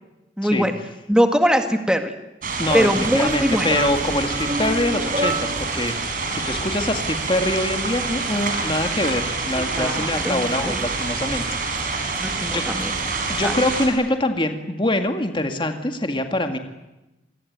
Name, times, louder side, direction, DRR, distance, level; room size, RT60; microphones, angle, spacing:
voice 1, 0.4-0.8 1.1-2.1 2.7-3.7 9.7-10.8 12.2-13.0 13.4-13.6, equal, 5° right, 6 dB, 2.0 m, -21 dB
sound 1, 2.4-13.9, right 4 dB, 50° right, 5.8 m, -27 dB
voice 2, 2.6-11.4 12.5-12.7 13.3-16.6, left 1 dB, 25° left, 6 dB, 2.0 m, -24 dB
sound 2, 2.7-5.8, right 2 dB, 35° right, 1.3 m, -29 dB
26.5 x 21.5 x 9.5 m, 0.99 s
head